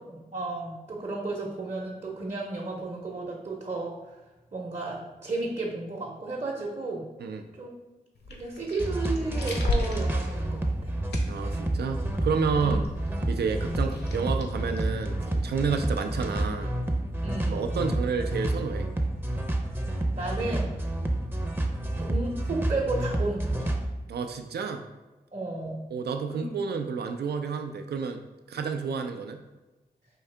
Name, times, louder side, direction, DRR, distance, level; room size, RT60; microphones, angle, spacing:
voice 1, 0.1-4.0 4.5-7.0 7.6-7.7 8.3-10.9 12.6-12.8 17.2-17.8 20.1-20.8 22.0-23.8 25.3-25.8 26.3-26.5, right 2 dB, 45° right, -2 dB, 0.8 m, -33 dB
sound 1, 8.1-15.5, left 2 dB, 75° left, 0.8 m, -37 dB
sound 2, 8.8-23.9, right 1 dB, 10° right, 0.6 m, -29 dB
voice 2, 11.3-12.8 13.3-16.7 17.5-18.9 24.1-24.8 25.9-28.2 28.5-29.4, right 5 dB, 75° right, 6 dB, 0.5 m, -30 dB
4.6 x 2.8 x 3.3 m, 1.1 s
cardioid pair, 45°, 17 cm